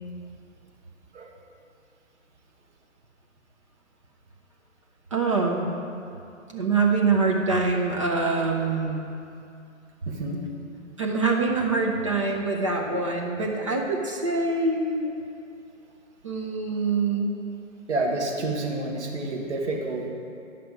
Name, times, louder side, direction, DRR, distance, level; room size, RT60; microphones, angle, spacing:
voice 1, 5.1-5.7 6.5-9.0 11.0-15.1 16.2-17.4, right 3 dB, 25° right, 0 dB, 0.4 m, -24 dB
voice 2, 10.1-10.4 17.9-20.1, right 2 dB, 60° right, 0 dB, 1.5 m, -29 dB
10.0 x 5.8 x 4.9 m, 2.6 s
figure-of-eight pair, 130°, 40 cm